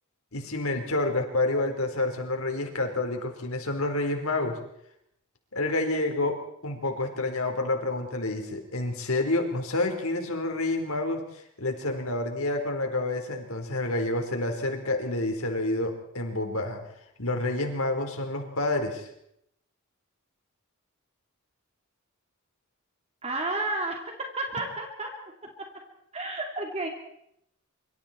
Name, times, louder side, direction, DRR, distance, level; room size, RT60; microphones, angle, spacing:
voice 1, 0.3-4.6 5.5-6.4 6.6-11.2 11.6-16.8 17.2-19.1, left 2 dB, 75° left, 4 dB, 4.3 m, -28 dB
voice 2, 23.2-25.1 26.1-26.9, right 2 dB, 30° right, 2 dB, 2.6 m, -31 dB
25.0 x 25.0 x 4.5 m, 0.73 s
head